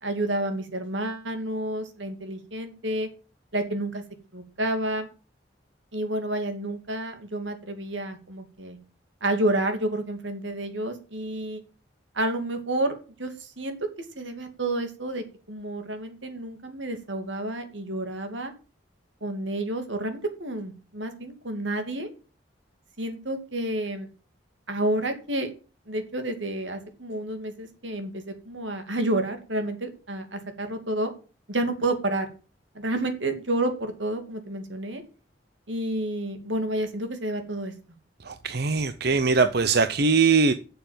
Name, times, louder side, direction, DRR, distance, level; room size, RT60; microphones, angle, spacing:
voice 1, 0.0-3.1 3.5-4.0 4.3-5.1 5.9-8.8 9.2-11.6 12.1-12.9 13.2-13.8 14.2-18.5 19.2-22.1 23.0-24.1 24.7-25.5 25.9-31.1 31.5-32.3 32.7-35.0 35.7-37.7, right 1 dB, 90° right, 7 dB, 2.8 m, -30 dB
voice 2, 38.2-40.5, right 4 dB, 60° right, 10 dB, 0.8 m, -21 dB
9.3 x 7.0 x 9.0 m, 0.35 s
head